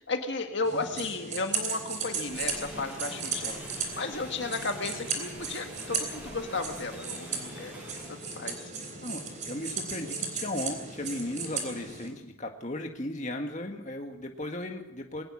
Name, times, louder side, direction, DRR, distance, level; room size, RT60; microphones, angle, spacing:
voice 1, 0.1-3.5 4.0-7.7 8.1-8.8, left 3 dB, 55° left, 5 dB, 1.9 m, -34 dB
sound 1, 0.6-12.1, right 5 dB, 35° right, 3.7 m, -36 dB
sound 2, 2.3-8.4, equal, 5° right, 7.6 m, -46 dB
voice 2, 9.0-15.2, left 1 dB, 35° left, 3 dB, 1.9 m, -36 dB
22.0 x 18.5 x 6.4 m, 0.80 s
head